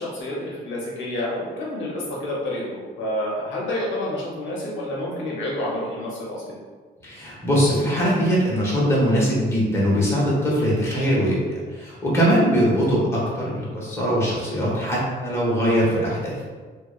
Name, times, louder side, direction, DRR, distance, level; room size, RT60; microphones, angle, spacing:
voice 1, 0.0-6.6, left 1 dB, 75° left, -4 dB, 0.6 m, -29 dB
voice 2, 7.0-16.4, equal, 15° left, -6 dB, 0.9 m, -21 dB
2.7 x 2.1 x 2.3 m, 1.5 s
cardioid pair, 90°, 20 cm